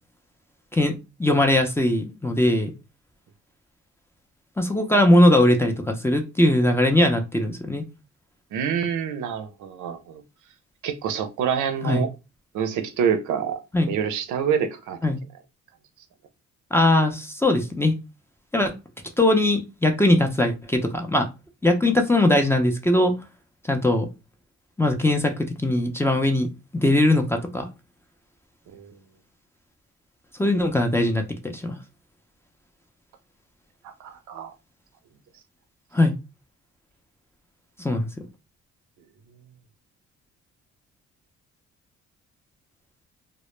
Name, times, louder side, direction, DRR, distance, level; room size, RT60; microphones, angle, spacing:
voice 1, 1.2-2.7 4.6-7.8 11.8-12.1 13.7-13.9 15.0-15.2 16.7-17.9 18.5-18.7 19.2-21.3 21.6-23.1 23.7-24.1 24.8-26.5 26.7-27.7 30.4-31.8 35.9-36.1 37.8-38.1, left 1 dB, 10° left, 0.4 m, -20 dB
voice 2, 8.5-10.2 10.8-12.1 12.5-13.6 13.9-15.0 28.7-28.9 33.8-34.5, right 7 dB, 80° right, 0.5 m, -26 dB
2.1 x 2.0 x 3.0 m
cardioid pair, 90°, 30 cm